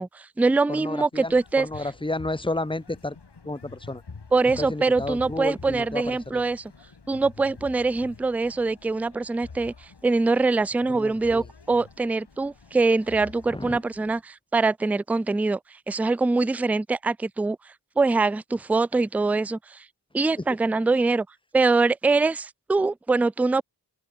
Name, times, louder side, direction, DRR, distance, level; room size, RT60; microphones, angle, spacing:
voice 1, 0.0-1.7 4.3-6.7 7.1-9.7 10.0-15.6 15.9-17.6 18.0-19.8 20.1-21.3 21.5-23.6, right 3 dB, 5° right, 0.3 m, -23 dB
voice 2, 0.7-3.2 3.4-4.0 4.6-6.4 10.9-11.5 13.5-13.8, left 2 dB, 10° left, 1.2 m, -32 dB
sound 1, 1.1-14.2, left 4 dB, 65° left, 5.6 m, -47 dB
open air
wide cardioid pair, 90°, 43 cm